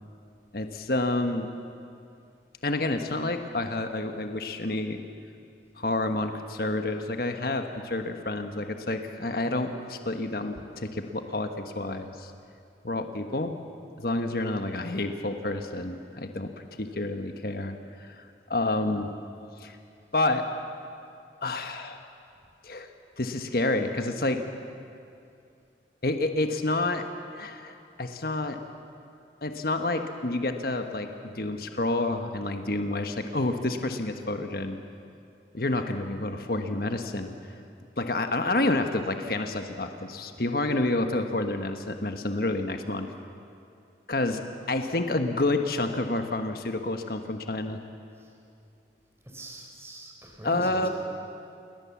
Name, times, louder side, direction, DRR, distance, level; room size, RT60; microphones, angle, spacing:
voice 1, 0.5-1.5 2.6-5.0 5.8-12.3 12.8-13.6 14.0-19.1 19.6-19.8 20.1-20.4 21.4-22.0 22.6-22.9 23.2-24.4 26.0-27.0 27.3-28.6 29.4-34.8 35.5-37.3 38.0-43.1 44.1-47.8 50.4-50.9, left 2 dB, 55° left, 6 dB, 1.4 m, -29 dB
voice 2, 49.3-50.9, right 1 dB, 15° right, 1 dB, 4.1 m, -42 dB
28.0 x 21.5 x 7.3 m, 2.5 s
head